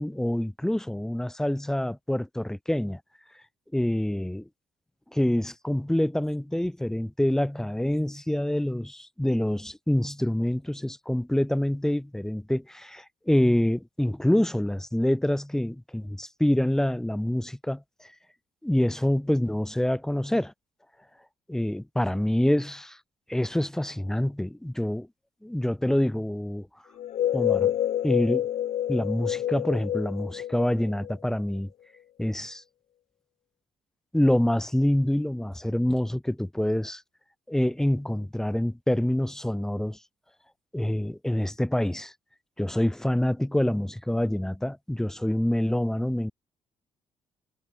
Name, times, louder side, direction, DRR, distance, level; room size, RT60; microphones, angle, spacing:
voice 1, 0.0-3.0 3.7-4.4 5.1-17.8 18.6-20.5 21.5-23.0 23.3-25.1 25.4-26.7 27.3-27.7 28.0-28.5 28.9-31.7 32.2-32.6 34.1-37.0 37.5-40.0 40.7-42.1 42.6-46.3, left 1 dB, 5° left, 4.2 m, -26 dB
sound 1, 27.0-31.6, left 11 dB, 70° left, 2.7 m, -28 dB
cardioid pair, 160°, 12 cm